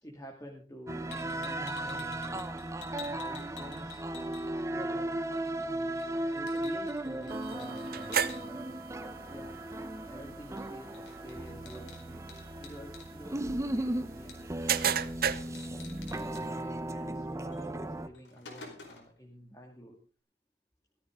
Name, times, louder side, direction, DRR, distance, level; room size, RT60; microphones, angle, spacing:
voice 1, 0.0-2.5 3.0-4.1 4.6-5.2 5.6-5.9 6.2-8.6 9.3-9.6 10.1-12.2 12.6-15.6 16.2-20.0, equal, 20° left, 0 dB, 2.3 m, -49 dB
sound 1, 0.9-18.1, right 1 dB, 15° right, 0.9 m, -36 dB
sound 2, 1.1-4.8 5.1-8.4 10.6-10.7 10.9-13.1 14.3-14.7 15.0-15.1 15.3-16.4 17.5-17.6 18.0-19.2, left 6 dB, 90° left, 4.7 m, -50 dB
sound 3, 7.3-16.6, right 8 dB, 55° right, 0.8 m, -37 dB
17.0 x 14.0 x 3.8 m, 0.35 s
head